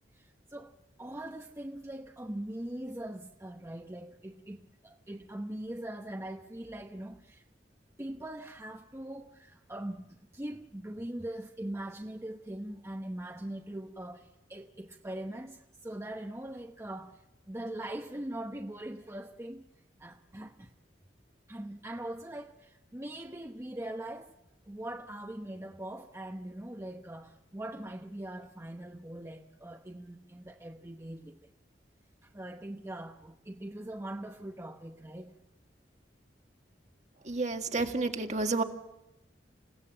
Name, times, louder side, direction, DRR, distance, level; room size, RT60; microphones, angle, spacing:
voice 1, 0.1-0.7 1.0-7.4 8.0-17.2 17.5-19.6 20.0-20.7 21.5-24.4 24.7-31.5 32.2-35.3, right 1 dB, 15° right, 3 dB, 0.9 m, -41 dB
voice 2, 37.2-38.6, right 3 dB, 40° right, 5 dB, 1.6 m, -30 dB
28.5 x 16.5 x 7.8 m, 0.95 s
head